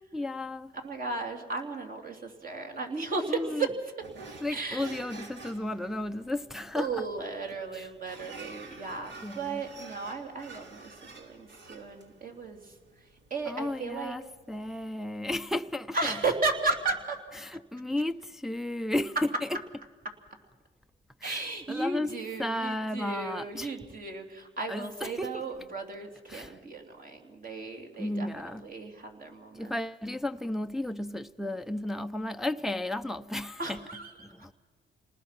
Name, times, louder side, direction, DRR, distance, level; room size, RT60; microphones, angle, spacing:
voice 1, 0.1-0.7 3.3-3.7 4.4-7.0 7.7-7.9 9.2-9.6 13.5-16.2 17.4-19.2 21.2-22.1 22.4-23.7 24.7-25.4 26.3-26.5 28.0-28.7 29.5-33.8 34.2-34.5, left 1 dB, ahead, 0.5 m, -34 dB
voice 2, 0.7-3.7 4.5-5.0 6.7-12.7 13.3-14.1 15.9-17.2 21.2-29.7 33.6-34.3, right 3 dB, 45° right, 3.2 m, -35 dB
sound 1, 4.0-14.8, right 3 dB, 65° right, 3.0 m, -49 dB
28.5 x 19.5 x 5.9 m
cardioid pair, 90°, 20 cm